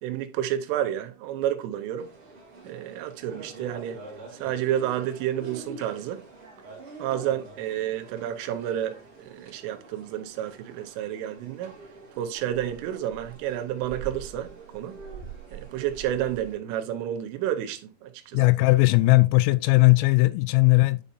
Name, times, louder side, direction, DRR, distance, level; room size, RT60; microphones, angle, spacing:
voice 1, 0.0-2.1 2.6-4.0 4.4-6.2 7.0-11.7 12.2-15.0 15.5-18.4, right 11 dB, 80° right, 3.3 m, -30 dB
sound 1, 2.0-16.6, right 4 dB, 35° right, 2.9 m, -45 dB
voice 2, 18.3-21.0, left 22 dB, 90° left, 3.2 m, -18 dB
10.5 x 5.4 x 2.6 m
omnidirectional pair, 5.8 m